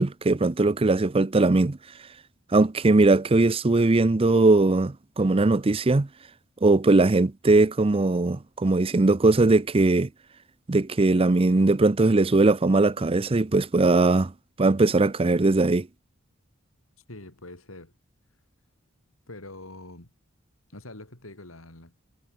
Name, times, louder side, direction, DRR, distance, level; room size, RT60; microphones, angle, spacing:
voice 1, 0.0-1.8 2.5-6.1 6.6-10.1 10.7-14.3 14.6-15.9, right 2 dB, 25° right, 0.6 m, -20 dB
voice 2, 17.1-17.9 19.3-20.1 20.7-22.1, left 2 dB, 85° left, 4.9 m, -44 dB
head